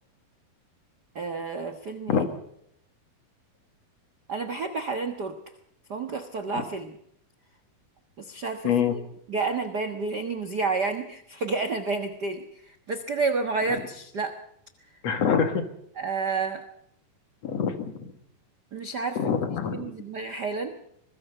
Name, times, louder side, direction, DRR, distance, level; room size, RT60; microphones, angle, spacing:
voice 1, 1.1-2.2 4.3-5.4 5.9-6.9 8.2-9.0 9.3-14.4 16.0-16.6 18.7-19.2 19.7-20.7, right 4 dB, 70° right, 7 dB, 0.9 m, -30 dB
voice 2, 15.0-15.6 17.4-18.1 19.2-19.9, left 7 dB, 50° left, 7 dB, 2.8 m, -25 dB
24.5 x 21.5 x 5.6 m, 0.70 s
omnidirectional pair, 4.2 m